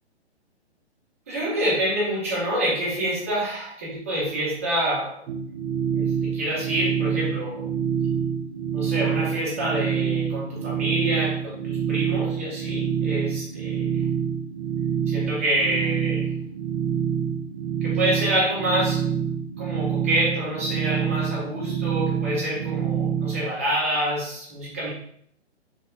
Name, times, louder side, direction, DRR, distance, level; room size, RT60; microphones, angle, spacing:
voice 1, 1.3-5.2 5.9-7.6 8.7-13.9 15.1-16.3 17.8-19.0 19.6-24.9, right 1 dB, 15° right, -6 dB, 0.3 m, -27 dB
sound 1, 5.3-23.5, right 8 dB, 80° right, 0.5 m, -26 dB
3.1 x 3.0 x 2.2 m, 0.66 s
hypercardioid pair, 140°, 34 cm